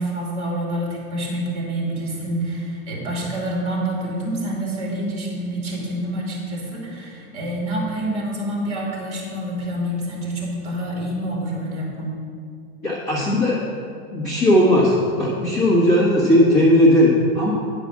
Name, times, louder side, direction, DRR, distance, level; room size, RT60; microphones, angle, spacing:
voice 1, 0.0-12.2, right 1 dB, 15° right, -3 dB, 2.4 m, -27 dB
voice 2, 12.8-13.6 14.1-17.5, left 1 dB, 25° left, -6 dB, 1.3 m, -17 dB
9.8 x 5.0 x 7.2 m, 2.3 s
supercardioid pair, 175°, 44 cm